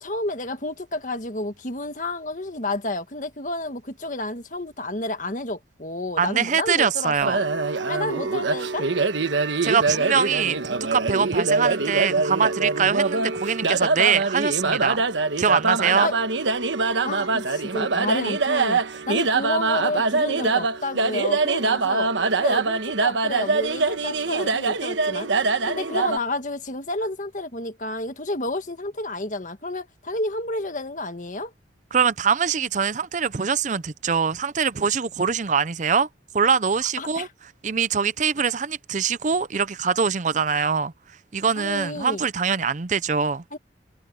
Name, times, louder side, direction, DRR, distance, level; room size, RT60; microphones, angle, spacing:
voice 1, 0.0-7.4 7.9-8.9 16.0-16.1 17.0-18.8 19.1-22.1 22.4-31.5 37.0-37.3 41.6-42.2 43.5-43.6, left 2 dB, 45° left, 1.7 m, -30 dB
voice 2, 6.2-7.4 9.6-15.0 15.4-16.1 31.9-36.1 36.3-37.3 37.6-40.9 41.3-43.4, right 6 dB, 40° right, 0.5 m, -23 dB
sound 1, 7.2-26.2, right 3 dB, 90° right, 1.2 m, -24 dB
head